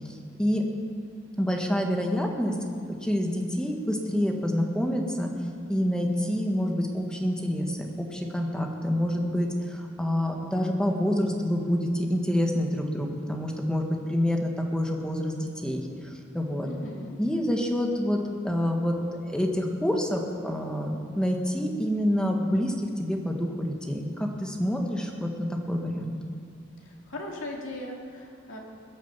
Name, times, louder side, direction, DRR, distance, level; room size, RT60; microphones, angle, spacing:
voice 1, 1.4-2.6 3.0-5.3 5.7-16.7 17.2-19.0 19.3-26.2, equal, 5° left, 2 dB, 1.5 m, -27 dB
voice 2, 16.6-17.2 26.8-28.6, left 1 dB, 75° left, -1 dB, 2.6 m, -38 dB
21.5 x 7.5 x 7.3 m, 2.3 s
head